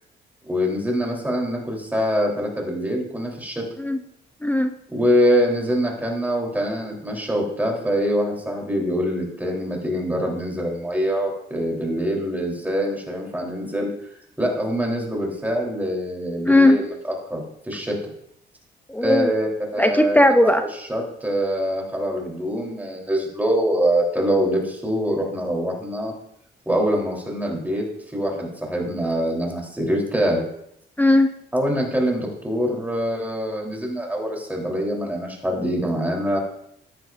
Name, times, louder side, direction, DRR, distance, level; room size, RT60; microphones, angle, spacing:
voice 1, 0.5-3.7 4.9-13.9 14.4-18.0 19.0-20.2 20.7-26.1 26.7-27.8 28.1-30.4 31.5-36.4, equal, 10° right, -1 dB, 3.5 m, -24 dB
voice 2, 4.4-4.7 16.5-16.8 18.9-19.3 19.8-20.6 31.0-31.3, left 1 dB, 10° left, 7 dB, 0.7 m, -17 dB
14.0 x 9.5 x 2.6 m, 0.75 s
cardioid pair, 90°, 20 cm